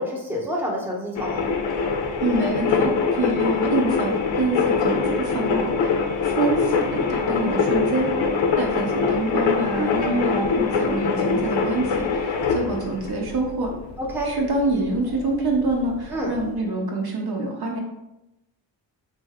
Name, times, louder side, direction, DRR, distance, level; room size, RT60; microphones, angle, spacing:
voice 1, 0.0-1.4 14.0-14.3 16.1-16.3, equal, 5° right, -1 dB, 0.7 m, -28 dB
sound 1, 1.2-16.5, left 5 dB, 70° left, 0.6 m, -24 dB
voice 2, 2.2-8.1 8.6-13.7 14.2-17.8, right 2 dB, 50° right, 0 dB, 0.7 m, -26 dB
2.6 x 2.2 x 3.4 m, 0.92 s
cardioid pair, 55°, 47 cm